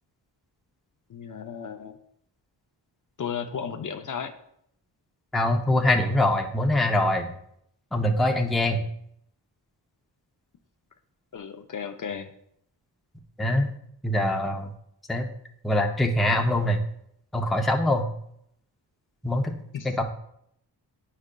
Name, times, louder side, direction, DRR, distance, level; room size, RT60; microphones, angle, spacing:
voice 1, 1.1-1.9 3.2-4.3 11.3-12.3 19.7-20.0, left 7 dB, 50° left, 6 dB, 0.5 m, -34 dB
voice 2, 5.3-7.3 7.9-8.8 13.4-13.7 14.0-14.7 15.1-15.3 15.6-16.8 17.3-18.0 19.2-19.5 19.8-20.0, left 1 dB, ahead, 2 dB, 0.5 m, -23 dB
9.4 x 4.9 x 2.2 m, 0.71 s
wide cardioid pair, 110°, 43 cm